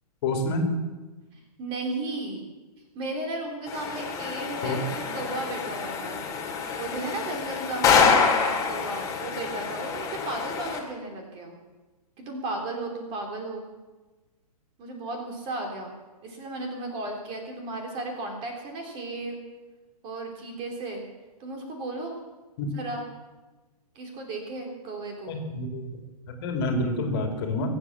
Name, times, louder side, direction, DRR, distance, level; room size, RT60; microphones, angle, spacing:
voice 1, 0.2-0.7 4.6-4.8 22.6-22.7 25.3-26.0 26.3-27.7, left 2 dB, 40° left, 3 dB, 2.9 m, -28 dB
voice 2, 1.3-2.4 2.9-6.2 6.8-11.5 12.2-13.6 14.8-16.0 16.2-19.4 20.0-21.0 21.4-22.1 22.7-23.0 23.9-25.4, right 2 dB, 25° right, 2 dB, 3.3 m, -34 dB
sound 1, 3.7-10.8, left 5 dB, 15° left, 2.6 m, -26 dB
22.5 x 8.5 x 7.1 m, 1.2 s
figure-of-eight pair, 120°, 20 cm